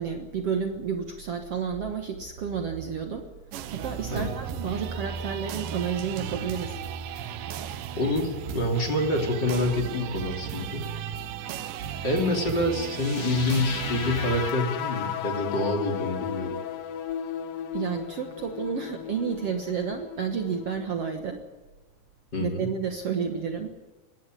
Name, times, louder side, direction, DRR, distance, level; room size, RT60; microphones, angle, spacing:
voice 1, 0.0-3.3 3.7-6.8 17.7-21.4 22.4-23.7, right 6 dB, 55° right, 6 dB, 2.0 m, -31 dB
Sex In-the-Suburbs, 3.5-14.5, right 8 dB, 85° right, 2.8 m, -35 dB
voice 2, 8.0-10.9 12.0-16.6 22.3-22.7, left 1 dB, 30° left, 3 dB, 3.6 m, -27 dB
sound 1, 12.8-20.9, left 9 dB, 85° left, 3.1 m, -35 dB
21.0 x 17.0 x 9.6 m, 1.3 s
omnidirectional pair, 3.9 m